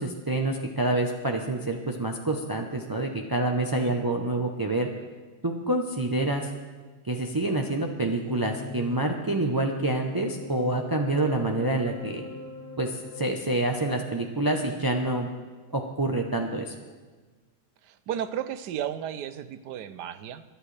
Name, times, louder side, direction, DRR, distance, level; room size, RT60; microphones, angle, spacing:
voice 1, 0.0-4.9 5.4-6.5 7.0-12.2 12.8-15.3 15.7-16.7, right 2 dB, 30° right, 2 dB, 0.4 m, -27 dB
sound 1, 8.0-14.5, left 4 dB, 25° left, 1.6 m, -41 dB
voice 2, 17.8-20.4, right 10 dB, 85° right, 12 dB, 1.3 m, -34 dB
22.5 x 11.0 x 3.3 m, 1.4 s
omnidirectional pair, 1.7 m